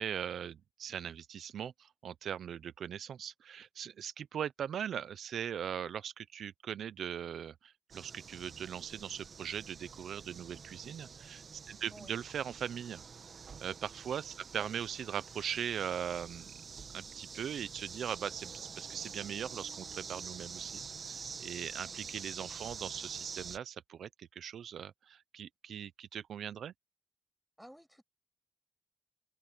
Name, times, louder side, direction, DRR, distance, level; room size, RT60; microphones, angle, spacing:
voice 1, 0.0-13.0 13.6-16.5 16.9-20.8 21.1-26.7, right 9 dB, 80° right, 0.6 m, -40 dB
sound 1, 7.9-23.6, right 5 dB, 55° right, 1.4 m, -47 dB
voice 2, 11.9-12.2 14.6-14.7 27.6-28.0, equal, ahead, 6.7 m, -53 dB
open air
cardioid pair, 105°, 0 cm